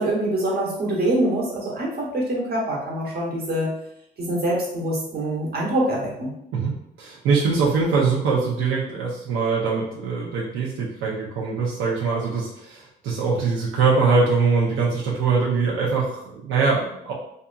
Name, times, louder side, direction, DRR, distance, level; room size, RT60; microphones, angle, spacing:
voice 1, 0.0-3.7 4.2-6.3, right 1 dB, 50° right, -3 dB, 1.0 m, -24 dB
voice 2, 7.0-17.1, right 4 dB, 85° right, -5 dB, 0.5 m, -22 dB
2.6 x 2.5 x 2.2 m, 0.77 s
cardioid pair, 90°, 20 cm